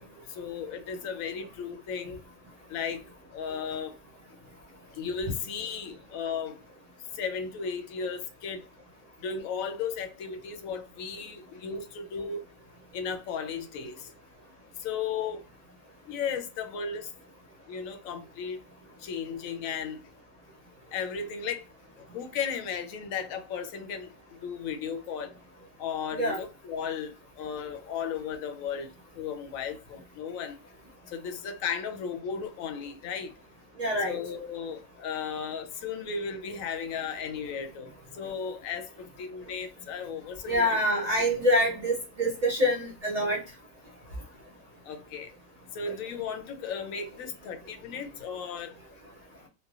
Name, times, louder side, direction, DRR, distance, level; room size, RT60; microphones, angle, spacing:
voice 1, 0.3-2.2 2.7-3.0 3.3-4.0 4.9-6.6 7.1-8.6 9.2-12.4 12.9-14.1 14.8-15.4 16.0-17.1 17.7-18.6 19.0-20.0 20.9-21.6 22.0-24.1 24.4-25.3 25.8-30.6 31.1-33.3 34.0-40.8 44.8-45.3 45.7-48.8, left 6 dB, 85° left, 1.0 m, -35 dB
voice 2, 33.8-34.2 40.5-43.4, equal, 45° right, 0.5 m, -25 dB
3.2 x 2.1 x 2.3 m
omnidirectional pair, 1.4 m